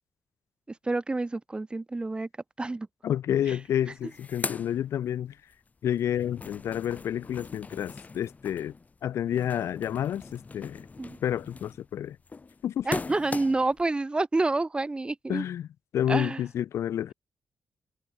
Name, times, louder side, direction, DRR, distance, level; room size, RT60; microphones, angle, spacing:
voice 1, 0.7-2.3 2.6-2.9 3.5-3.6 11.0-11.2 12.8-15.4 16.1-16.4, right 2 dB, 20° right, 0.6 m, -28 dB
voice 2, 3.0-5.4 5.8-8.7 9.0-10.9 11.2-12.2 12.6-12.9 15.3-15.7 15.9-17.1, left 10 dB, 80° left, 0.4 m, -29 dB
sound 1, 3.4-3.5 3.8-5.6 5.9-13.8, left 4 dB, 35° left, 0.7 m, -40 dB
cardioid pair, 75°, 5 cm